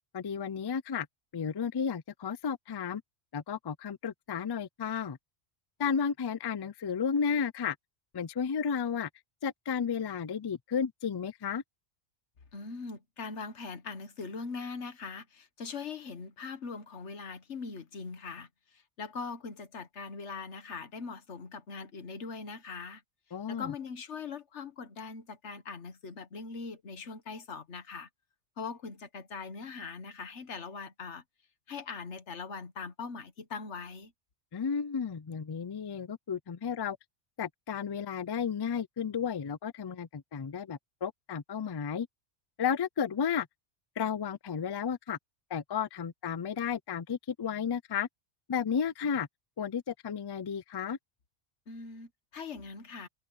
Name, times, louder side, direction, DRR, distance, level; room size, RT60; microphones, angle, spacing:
voice 1, 0.1-1.1 1.3-3.0 3.3-5.2 5.8-7.8 8.1-9.1 9.4-11.6 23.3-23.7 34.5-37.0 37.4-42.1 42.6-43.5 44.0-45.2 45.5-48.1 48.5-49.3 49.6-51.0, left 7 dB, 40° left, 0.3 m, -33 dB
voice 2, 12.5-18.5 18.7-23.0 23.5-28.1 28.6-31.2 31.7-34.1 51.7-53.1, left 5 dB, 90° left, 1.6 m, -41 dB
omnidirectional pair, 1.1 m